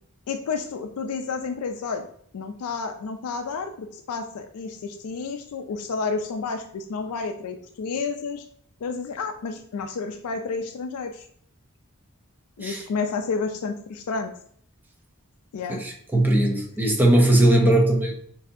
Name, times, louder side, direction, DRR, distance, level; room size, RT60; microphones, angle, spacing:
voice 1, 0.3-2.1 2.3-8.4 8.8-11.3 12.6-14.3 15.5-15.8, left 4 dB, 80° left, 5 dB, 0.4 m, -30 dB
voice 2, 15.7-18.1, right 1 dB, 10° right, 0 dB, 0.6 m, -19 dB
6.5 x 2.7 x 2.6 m, 0.63 s
head